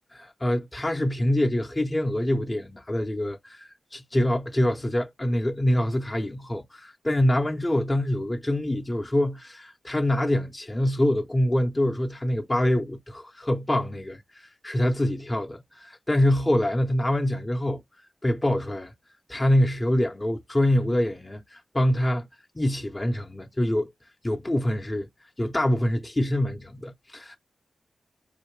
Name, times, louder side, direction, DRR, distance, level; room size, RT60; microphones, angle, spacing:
voice 1, 0.4-17.8 18.2-18.9 19.3-22.3 22.5-23.9 24.2-25.1 25.4-27.4, left 1 dB, 20° left, 0.7 m, -25 dB
4.2 x 2.7 x 3.2 m
cardioid pair, 70°, 0 cm